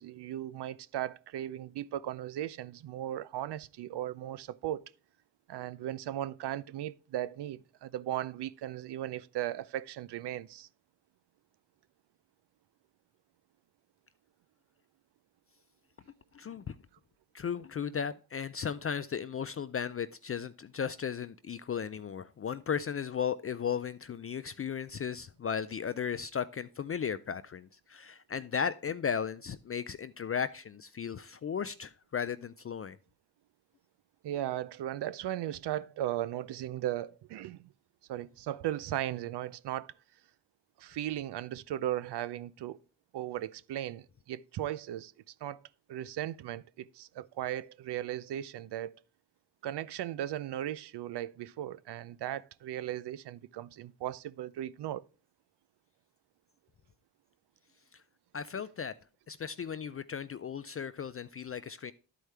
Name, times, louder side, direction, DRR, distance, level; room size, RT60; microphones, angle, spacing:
voice 1, 0.0-4.8 5.5-10.7 34.2-37.7 38.1-39.9 40.8-42.8 43.1-45.1 45.4-45.6 45.9-48.9 49.6-55.0, right 12 dB, 65° right, 0.6 m, -37 dB
voice 2, 16.3-16.8 17.3-33.0 58.3-58.9 59.3-61.9, left 7 dB, 35° left, 0.4 m, -35 dB
11.5 x 4.6 x 3.3 m
cardioid pair, 60°, 44 cm